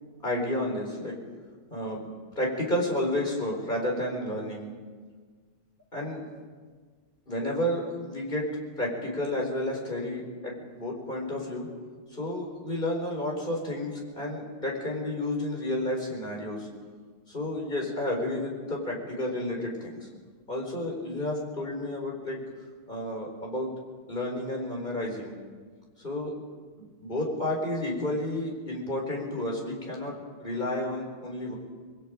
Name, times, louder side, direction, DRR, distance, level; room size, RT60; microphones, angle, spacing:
voice 1, 0.2-1.1 1.7-2.0 2.4-4.7 5.9-6.2 7.3-8.4 8.8-11.7 12.1-16.7 17.3-20.1 20.5-22.4 22.9-23.7 24.1-25.3 26.0-26.3 26.8-30.1 30.4-31.6, left 1 dB, 20° left, -1 dB, 4.6 m, -31 dB
26.5 x 20.5 x 5.1 m, 1.5 s
omnidirectional pair, 2.4 m